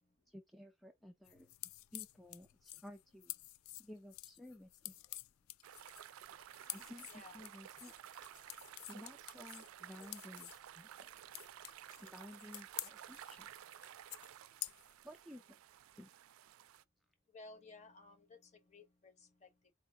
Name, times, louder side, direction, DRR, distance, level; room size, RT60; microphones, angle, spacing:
voice 1, 0.3-1.5 1.9-3.3 3.8-4.9 6.7-8.2 8.9-10.9 12.0-13.5 15.0-15.6 15.9-16.1, left 1 dB, ahead, 0.4 m, -54 dB
sound 1, 1.2-15.1, left 16 dB, 80° left, 0.3 m, -50 dB
sound 2, 5.6-16.8, right 10 dB, 85° right, 0.3 m, -54 dB
voice 2, 7.1-7.4 9.9-10.1 17.3-19.7, left 3 dB, 35° left, 0.8 m, -58 dB
4.2 x 2.7 x 3.3 m
head